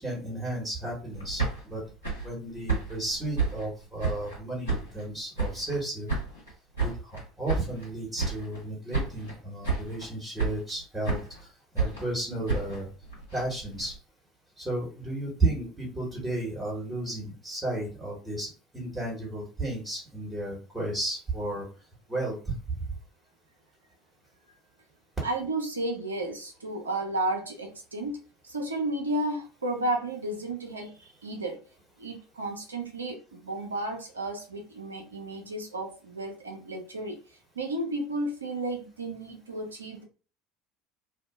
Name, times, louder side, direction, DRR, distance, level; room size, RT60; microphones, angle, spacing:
voice 1, 0.0-1.8 2.2-6.1 6.8-12.9 13.3-13.9 14.6-21.7 22.1-22.5, right 2 dB, 15° right, -4 dB, 1.3 m, -33 dB
sound 1, 1.1-4.4 4.6-5.8 6.1-7.9 8.2-8.7 8.9-9.4 9.6-10.1 10.4-11.4 11.8-13.9, right 4 dB, 90° left, 1.2 m, -31 dB
voice 2, 25.2-28.2 28.4-31.6 32.0-37.2 37.6-40.0, right 1 dB, 85° right, 3 dB, 0.5 m, -33 dB
2.6 x 2.2 x 2.3 m, 0.36 s
figure-of-eight pair, 65°, 0 cm